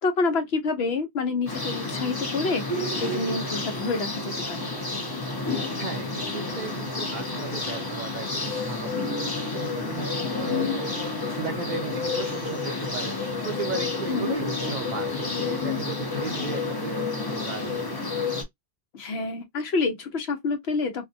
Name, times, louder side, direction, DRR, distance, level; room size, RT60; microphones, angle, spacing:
voice 1, 0.0-4.7 14.1-14.3 18.9-21.1, left 3 dB, 75° left, 1.0 m, -28 dB
sound 1, 1.5-18.4, left 3 dB, 25° left, 0.7 m, -30 dB
voice 2, 5.8-17.9, right 5 dB, 50° right, 0.6 m, -36 dB
2.5 x 2.1 x 2.6 m
omnidirectional pair, 1.1 m